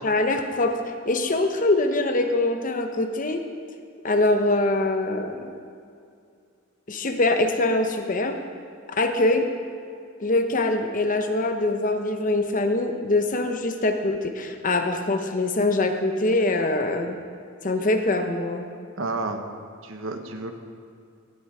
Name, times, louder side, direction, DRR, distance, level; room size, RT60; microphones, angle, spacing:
voice 1, 0.0-0.8 1.1-3.4 4.0-5.5 6.9-8.4 8.9-9.5 10.2-17.2 17.6-18.7, left 2 dB, 40° left, 6 dB, 0.9 m, -23 dB
voice 2, 19.0-19.5 19.8-20.5, right 3 dB, 70° right, 6 dB, 1.1 m, -30 dB
16.5 x 7.7 x 4.8 m, 2.3 s
head